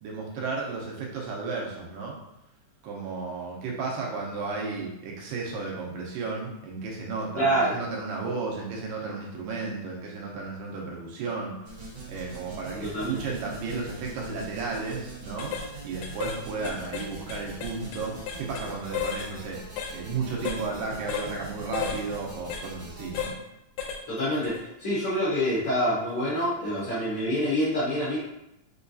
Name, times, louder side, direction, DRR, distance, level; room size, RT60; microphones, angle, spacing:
voice 1, 0.0-2.2 2.8-11.5 12.1-19.6 19.9-23.4, right 4 dB, 80° right, -2 dB, 2.4 m, -33 dB
voice 2, 7.4-7.8 12.7-13.2 24.1-28.2, equal, 60° left, -10 dB, 1.7 m, -26 dB
sound 1, 11.6-23.3, right 3 dB, 55° right, 2.2 m, -43 dB
sound 2, 14.7-14.9 15.4-15.7 16.0-16.4 16.6-18.7 18.9-19.3 19.8-19.9 20.5-20.6 21.1-21.3 21.7-22.0 22.5-22.6 23.2-23.4 23.8-24.0 24.4-24.6, left 7 dB, 80° left, 2.1 m, -33 dB
5.5 x 2.3 x 2.6 m, 0.85 s
omnidirectional pair, 3.9 m